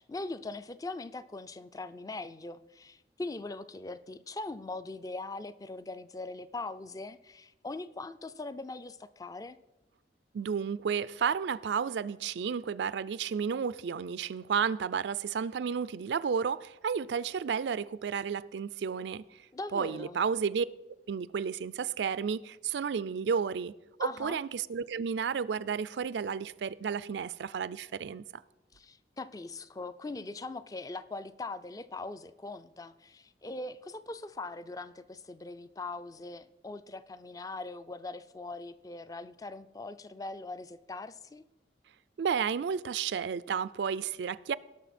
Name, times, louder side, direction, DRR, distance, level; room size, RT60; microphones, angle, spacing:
voice 1, 0.0-9.6 19.5-20.2 24.0-24.4 28.7-41.5, left 2 dB, 20° left, 0.4 m, -41 dB
voice 2, 10.3-19.2 19.7-20.7 21.1-23.7 24.0-28.4 42.2-44.5, right 6 dB, 80° right, 0.4 m, -32 dB
18.0 x 6.3 x 4.2 m
head